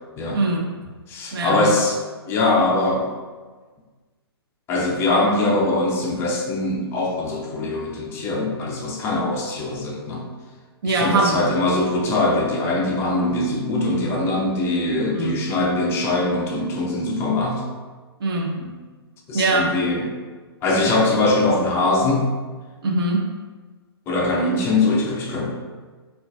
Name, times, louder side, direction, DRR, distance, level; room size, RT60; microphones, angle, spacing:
voice 1, 0.3-0.8 1.3-1.7 10.8-11.6 15.1-15.4 18.2-18.5 19.3-19.7 22.8-23.2, right 2 dB, 60° right, 0 dB, 0.5 m, -22 dB
voice 2, 1.1-2.0 2.3-3.1 4.7-10.2 10.8-17.6 18.6-18.7 19.3-20.1 20.6-22.3 24.1-25.6, left 2 dB, 15° left, -1 dB, 0.4 m, -22 dB
3.7 x 2.4 x 2.3 m, 1.4 s
figure-of-eight pair, 125°, 14 cm